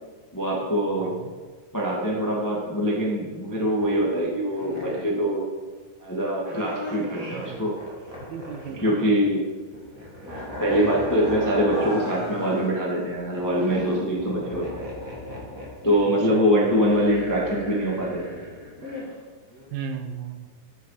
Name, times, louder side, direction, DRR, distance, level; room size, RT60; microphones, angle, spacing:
voice 1, 0.3-1.1 1.7-5.5 6.0-7.7 8.8-9.4 10.6-14.8 15.8-18.2, equal, 10° left, -3 dB, 0.9 m, -23 dB
voice 2, 1.0-1.3 7.3-7.7 8.2-8.8 16.2-16.5 19.7-20.5, right 7 dB, 85° right, 6 dB, 2.9 m, -35 dB
sound 1, 3.8-4.2 4.6-5.2 6.4-9.2 9.5-12.7 13.1-19.1 19.5-19.6, left 1 dB, 25° right, 2.4 m, -36 dB
12.0 x 8.3 x 5.0 m, 1.4 s
omnidirectional pair, 4.2 m